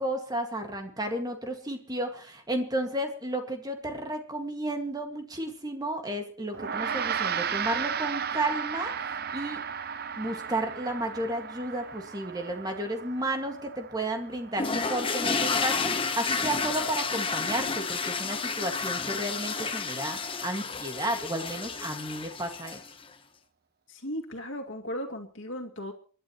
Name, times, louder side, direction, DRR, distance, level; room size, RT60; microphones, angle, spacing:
voice 1, 0.0-8.9 9.3-9.6 10.2-22.8, right 1 dB, 20° right, 5 dB, 2.0 m, -32 dB
Gong, 6.5-16.1, right 7 dB, 50° right, 0.8 m, -35 dB
sound 1, 14.6-23.0, left 4 dB, 25° left, 1.0 m, -31 dB
voice 2, 23.9-25.9, equal, 65° left, 3 dB, 2.4 m, -36 dB
29.5 x 11.5 x 3.1 m, 0.40 s
head